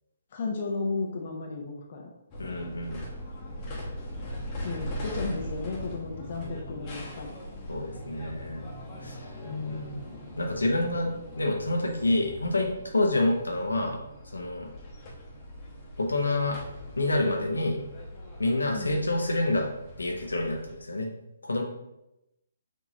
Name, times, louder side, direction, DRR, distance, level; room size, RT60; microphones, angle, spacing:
voice 1, 0.3-2.1 4.6-7.3 9.4-10.1 18.7-18.9, left 3 dB, 45° left, 0 dB, 0.8 m, -34 dB
sound 1, 2.3-20.8, equal, 25° left, 1.1 m, -41 dB
voice 2, 2.4-3.0 7.7-8.7 9.0-9.2 9.7-9.8 10.4-14.0 14.3-14.7 16.0-16.6 17.0-17.8 18.4-19.7 20.0-21.1 21.4-21.6, left 2 dB, 75° left, 1 dB, 0.9 m, -27 dB
6.1 x 3.0 x 2.8 m, 0.88 s
figure-of-eight pair, 135°, 0 cm